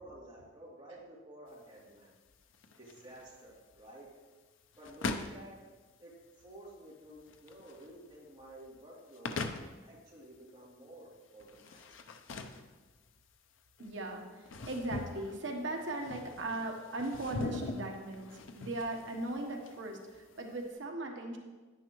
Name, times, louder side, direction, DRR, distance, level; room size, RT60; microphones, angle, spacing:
voice 1, 0.0-2.1 2.7-4.1 4.7-5.6 6.0-11.9, right 1 dB, 20° right, -8 dB, 3.1 m, -52 dB
sound 1, 1.5-20.7, left 3 dB, 80° left, 0.6 m, -43 dB
voice 2, 13.8-21.4, right 2 dB, 70° right, 2 dB, 1.2 m, -38 dB
10.0 x 9.7 x 3.1 m, 1.3 s
head